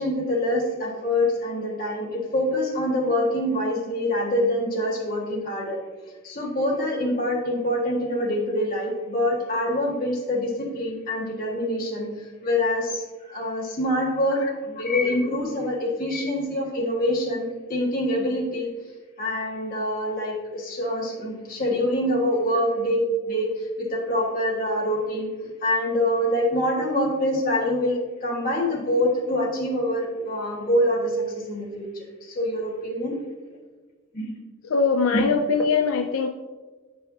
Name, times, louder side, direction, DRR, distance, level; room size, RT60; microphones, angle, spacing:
voice 1, 0.0-5.8 6.2-12.1 12.4-18.7 19.2-23.0 23.3-25.3 25.6-31.8 32.2-33.2 34.1-34.3, left 1 dB, 45° left, -4 dB, 1.7 m, -25 dB
voice 2, 34.7-36.3, left 5 dB, 85° left, 6 dB, 0.4 m, -22 dB
8.9 x 5.5 x 2.7 m, 1.4 s
head